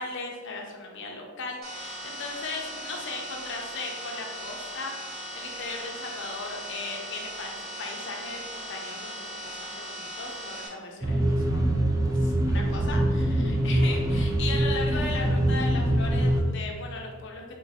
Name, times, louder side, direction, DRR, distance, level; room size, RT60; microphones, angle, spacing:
voice 1, 0.0-11.8 12.0-17.4, left 3 dB, 55° left, 1 dB, 0.6 m, -37 dB
sound 1, 1.6-10.7, equal, 45° right, 1.4 m, -38 dB
sound 2, 11.0-16.4, right 1 dB, 15° right, 0.3 m, -24 dB
3.7 x 2.5 x 4.0 m, 1.5 s
head